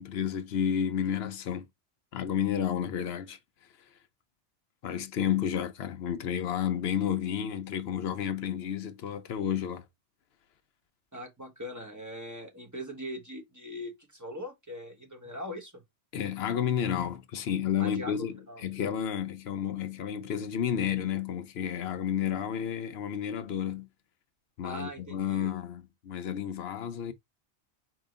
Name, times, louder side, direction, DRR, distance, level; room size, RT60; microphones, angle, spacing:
voice 1, 0.0-1.6 2.1-3.4 4.8-9.8 16.1-18.3 18.6-23.9 24.6-27.1, left 9 dB, 65° left, 0.9 m, -31 dB
voice 2, 11.1-15.8 17.8-18.6 24.6-25.5, equal, 15° right, 1.2 m, -41 dB
4.7 x 3.0 x 3.6 m
omnidirectional pair, 1.2 m